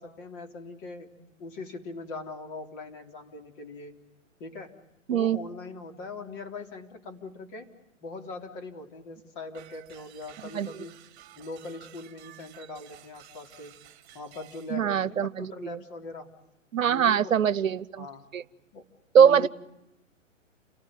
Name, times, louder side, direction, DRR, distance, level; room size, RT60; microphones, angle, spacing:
voice 1, 0.0-4.0 4.4-4.8 5.1-7.7 8.0-11.0 11.4-13.8 14.1-16.3 16.8-17.5 18.0-18.2 18.7-18.9 19.2-19.5, left 3 dB, 40° left, 4 dB, 3.8 m, -41 dB
sound 1, 9.5-14.8, right 13 dB, 25° right, 2.7 m, -53 dB
voice 2, 14.7-15.8 16.7-18.1 18.3-18.4 19.1-19.5, right 8 dB, 85° right, 21 dB, 0.9 m, -22 dB
29.5 x 18.5 x 9.2 m, 0.91 s
hypercardioid pair, 130°, 39 cm